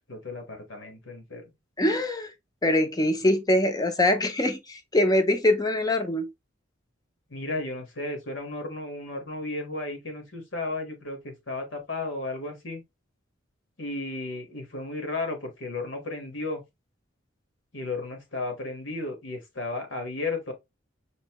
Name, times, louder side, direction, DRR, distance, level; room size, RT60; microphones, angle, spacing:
voice 1, 0.0-1.4 7.3-12.8 13.8-16.6 17.7-20.5, left 2 dB, 70° left, 1.5 m, -34 dB
voice 2, 1.8-2.3 2.6-6.3, left 1 dB, 20° left, 0.6 m, -23 dB
5.3 x 2.7 x 2.9 m
head